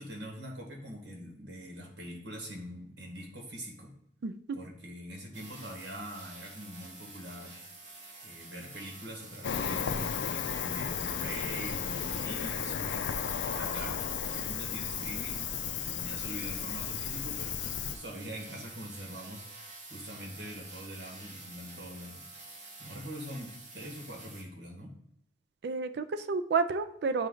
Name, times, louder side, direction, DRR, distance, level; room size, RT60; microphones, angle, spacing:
voice 1, 0.0-3.9 4.5-7.6 8.2-13.1 13.4-19.4 19.9-22.3 22.8-24.9, equal, 85° right, 0 dB, 1.6 m, -43 dB
voice 2, 4.2-4.6 25.6-27.3, right 4 dB, 65° right, 11 dB, 0.4 m, -30 dB
sound 1, 5.3-24.4, right 2 dB, 45° right, 1.2 m, -49 dB
Cricket, 9.4-17.9, left 7 dB, 80° left, 0.4 m, -34 dB
8.9 x 3.2 x 3.8 m, 0.77 s
head